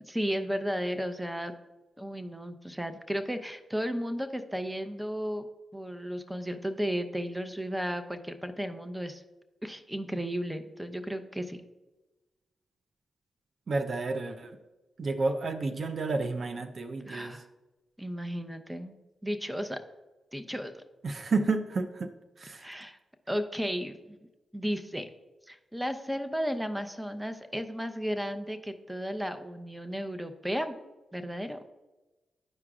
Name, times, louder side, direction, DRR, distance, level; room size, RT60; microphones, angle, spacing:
voice 1, 0.1-1.5 2.0-5.5 5.7-9.2 9.6-11.6 17.1-17.4 18.0-19.0 19.2-19.8 20.3-20.8 22.5-23.0 23.3-24.2 24.5-25.1 25.5-30.8 31.1-31.7, equal, 10° right, 8 dB, 0.7 m, -34 dB
voice 2, 13.7-14.6 15.0-17.4 21.0-22.1 22.4-22.7, right 3 dB, 60° right, 7 dB, 0.5 m, -31 dB
12.0 x 4.8 x 2.4 m, 1.1 s
supercardioid pair, 45°, 0 cm